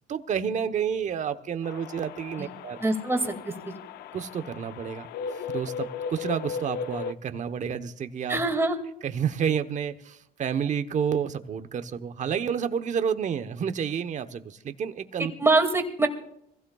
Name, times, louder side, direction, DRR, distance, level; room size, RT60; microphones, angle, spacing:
voice 1, 0.0-2.8 4.1-5.1 5.5-8.4 9.0-15.3, right 7 dB, 45° right, 9 dB, 1.1 m, -30 dB
sound 1, 1.6-7.1, left 6 dB, 70° left, 0.5 m, -36 dB
voice 2, 2.8-3.3 8.3-8.8 15.4-16.1, right 2 dB, 15° right, 4 dB, 2.3 m, -23 dB
25.5 x 16.0 x 2.4 m, 0.72 s
cardioid pair, 110°, 17 cm